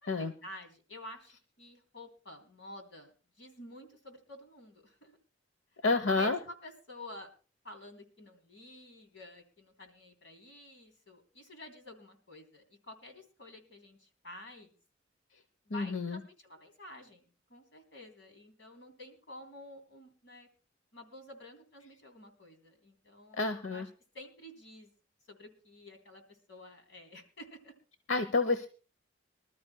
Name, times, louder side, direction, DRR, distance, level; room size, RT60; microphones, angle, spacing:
voice 1, 0.0-5.2 6.1-7.3 7.6-14.7 15.6-20.5 20.9-23.9 24.1-24.9 25.3-27.7, left 1 dB, 70° left, 5 dB, 3.3 m, -50 dB
voice 2, 5.8-6.4 15.7-16.2 23.4-23.9 28.1-28.7, left 3 dB, 85° left, 10 dB, 0.9 m, -29 dB
25.5 x 12.5 x 2.2 m, 0.35 s
head